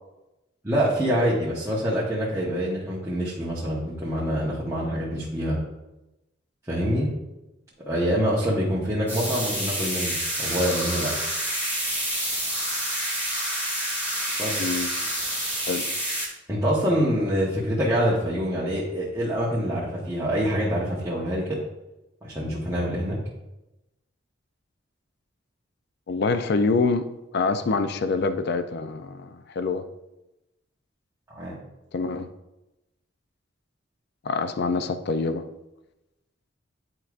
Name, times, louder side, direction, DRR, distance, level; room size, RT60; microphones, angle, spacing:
voice 1, 0.6-5.6 6.7-7.1 7.9-11.1 14.4-14.8 16.5-21.6 22.2-23.2 31.3-31.6, equal, 15° right, -9 dB, 1.1 m, -25 dB
sound 1, 9.1-16.3, right 1 dB, 10° left, 2.0 m, -28 dB
voice 2, 14.6-14.9 15.7-15.9 26.1-27.1 27.3-29.8 31.9-32.3 34.2-35.4, left 4 dB, 55° left, 10 dB, 0.4 m, -25 dB
9.9 x 4.7 x 2.5 m, 0.96 s
head